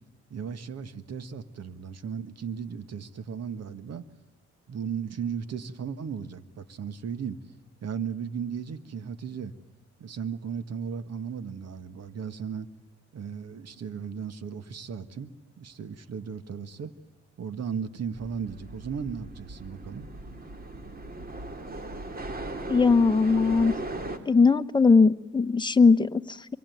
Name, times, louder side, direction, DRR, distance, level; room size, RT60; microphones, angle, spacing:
voice 1, 0.3-4.1 4.7-7.4 7.8-9.5 10.0-12.7 13.1-16.9 17.4-20.1, right 7 dB, 55° right, 13 dB, 1.8 m, -36 dB
sound 1, 18.1-24.2, right 2 dB, 30° right, 3.0 m, -38 dB
voice 2, 22.7-23.7 24.3-26.6, left 4 dB, 15° left, 9 dB, 1.1 m, -20 dB
25.5 x 24.0 x 9.5 m, 0.94 s
cardioid pair, 90°, 30 cm